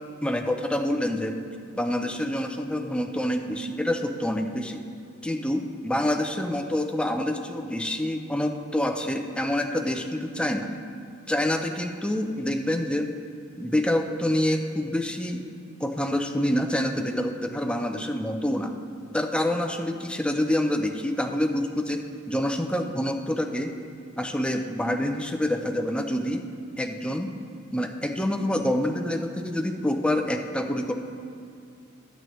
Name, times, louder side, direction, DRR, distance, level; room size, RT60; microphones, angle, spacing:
voice 1, 0.2-1.4 1.8-4.8 5.2-10.7 11.3-13.1 13.6-15.4 15.8-18.7 19.1-23.7 24.2-26.4 26.8-27.3 27.7-30.9, left 1 dB, 5° left, 4 dB, 0.5 m, -27 dB
11.5 x 9.2 x 3.1 m, 2.5 s
head